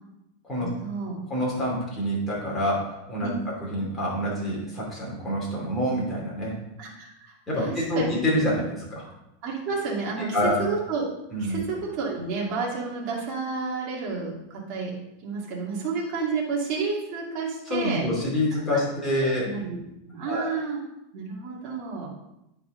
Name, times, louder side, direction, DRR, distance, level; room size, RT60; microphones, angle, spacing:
voice 1, 0.6-1.2 3.2-3.3 6.8-8.1 9.4-10.3 10.6-11.1 11.4-14.9 15.2-18.0 19.4-19.8 20.1-20.8 21.1-22.2, right 4 dB, 45° right, -3 dB, 2.1 m, -31 dB
voice 2, 1.3-6.6 7.5-9.0 10.3-10.6 11.3-11.6 17.7-19.5 20.3-20.5, equal, 15° left, -5 dB, 2.7 m, -27 dB
9.3 x 4.7 x 3.8 m, 0.87 s
supercardioid pair, 150°, 0 cm